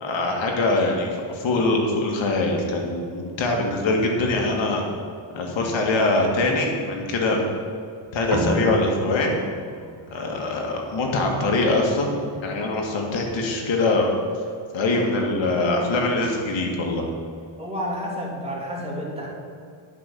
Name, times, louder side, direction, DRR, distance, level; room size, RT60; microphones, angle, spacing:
voice 1, 0.0-4.8 5.3-7.4 8.1-9.4 10.1-12.1 12.4-14.1 14.7-17.1, left 2 dB, 70° left, 1 dB, 2.1 m, -23 dB
sound 1, 8.3-13.0, right 2 dB, 45° right, 1.3 m, -34 dB
voice 2, 17.6-19.3, equal, 10° right, -4 dB, 2.8 m, -30 dB
10.0 x 5.5 x 6.8 m, 2.3 s
cardioid pair, 105°, 47 cm